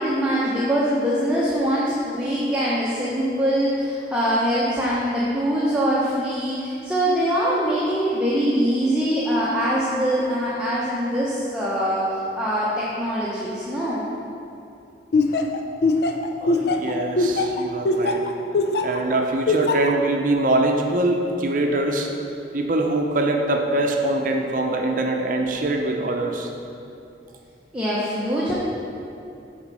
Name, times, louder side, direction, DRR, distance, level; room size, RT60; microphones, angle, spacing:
voice 1, 0.0-12.0 12.4-14.0 27.7-28.5, equal, 5° right, -8 dB, 0.8 m, -23 dB
Laughter, 15.1-19.0 19.5-19.9, left 3 dB, 65° left, 0.5 m, -21 dB
voice 2, 16.4-18.2 18.8-22.1 22.5-26.5, right 2 dB, 50° right, 2 dB, 0.6 m, -23 dB
7.3 x 4.4 x 6.1 m, 2.6 s
head